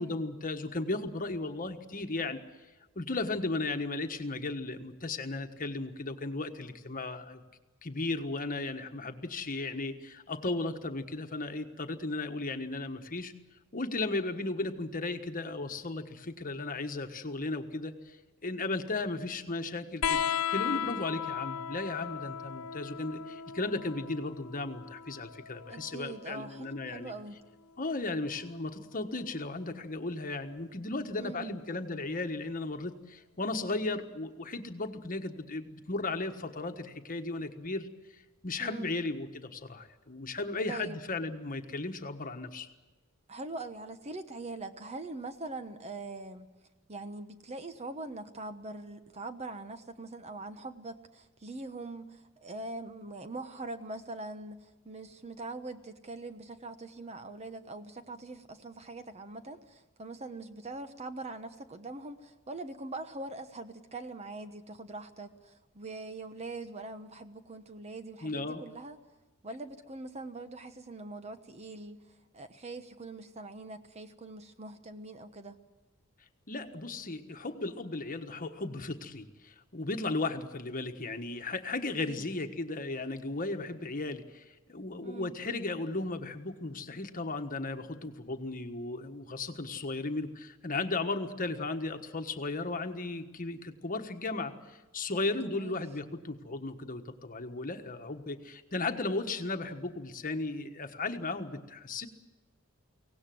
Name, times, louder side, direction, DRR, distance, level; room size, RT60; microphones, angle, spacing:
voice 1, 0.0-2.4 2.9-7.4 7.8-13.3 13.7-18.2 18.4-20.2 20.5-27.1 27.8-37.9 38.4-42.7 68.2-68.6 76.5-102.1, left 2 dB, 40° left, 6 dB, 1.4 m, -35 dB
sound 1, 20.0-27.1 28.5-29.3 30.6-30.7, left 8 dB, 75° left, 0.7 m, -36 dB
voice 2, 25.7-27.4 31.2-31.6 38.6-38.9 40.7-41.0 43.3-46.5 46.9-69.0 69.4-72.0 72.3-75.6 82.1-82.2 85.0-85.3 95.4-95.8, right 2 dB, 30° right, 9 dB, 1.1 m, -42 dB
24.0 x 18.0 x 7.8 m, 1.2 s
head